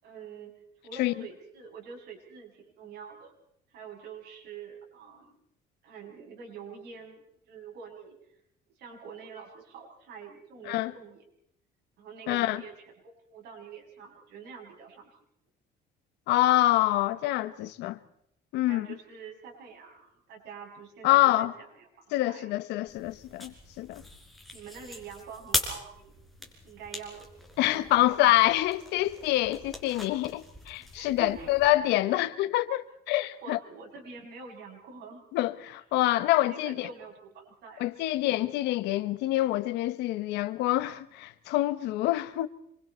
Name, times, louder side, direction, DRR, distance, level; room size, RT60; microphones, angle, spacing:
voice 1, 0.0-3.3 3.7-5.3 5.8-8.2 8.8-11.2 12.0-12.7 13.0-15.1 18.7-22.5 24.5-26.1 26.4-27.3 27.7-28.3 30.8-31.5 31.9-32.2 33.4-35.2 36.3-38.0, right 6 dB, 75° right, 7.7 m, -46 dB
voice 2, 12.3-12.6 16.3-18.0 18.5-18.9 21.0-21.5 22.1-24.0 27.6-33.6 35.3-36.9 37.8-42.5, left 16 dB, 90° left, 1.2 m, -26 dB
sound 1, 22.9-31.7, left 1 dB, ahead, 4.9 m, -40 dB
26.5 x 24.0 x 4.5 m
cardioid pair, 110°, 17 cm